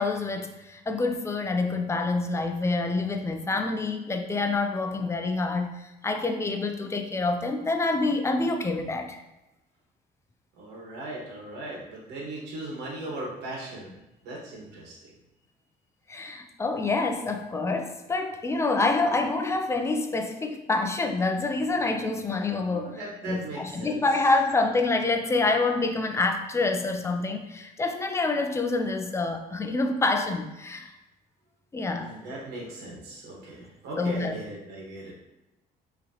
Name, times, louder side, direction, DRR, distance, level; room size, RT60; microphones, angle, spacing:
voice 1, 0.0-9.2 16.1-23.0 23.3-30.9 31.7-32.1 34.0-34.4, left 3 dB, 15° left, 5 dB, 0.5 m, -27 dB
voice 2, 10.6-13.9 14.2-15.0 22.7-24.0 32.0-35.1, right 2 dB, 85° right, -3 dB, 1.4 m, -38 dB
5.3 x 3.1 x 2.9 m, 0.97 s
cardioid pair, 110°, 17 cm